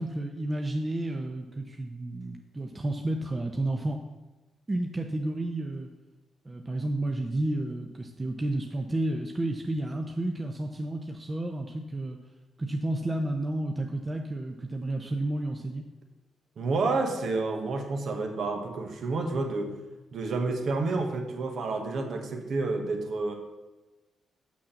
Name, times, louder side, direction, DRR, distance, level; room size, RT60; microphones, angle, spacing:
voice 1, 0.0-4.0 4.7-5.9 6.4-12.2 12.6-15.8, right 1 dB, 30° right, 3 dB, 0.8 m, -31 dB
voice 2, 16.6-19.7 20.1-23.4, right 3 dB, 65° right, 4 dB, 1.3 m, -29 dB
6.3 x 5.9 x 7.1 m, 1.1 s
supercardioid pair, 55°, 0 cm